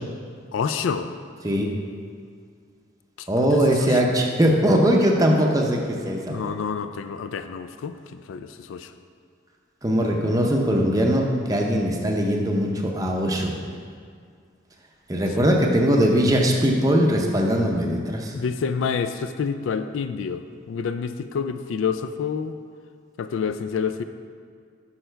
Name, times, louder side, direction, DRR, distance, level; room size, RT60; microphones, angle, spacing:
voice 1, 0.5-1.1 3.2-3.3 3.9-4.0 6.3-7.9 8.3-8.9 18.3-20.4 20.7-22.5 23.2-24.0, left 6 dB, 80° left, 10 dB, 0.3 m, -28 dB
voice 2, 3.3-6.5 9.8-13.6 15.1-18.3, equal, 20° right, 0 dB, 0.6 m, -21 dB
6.6 x 5.6 x 4.4 m, 2.1 s
head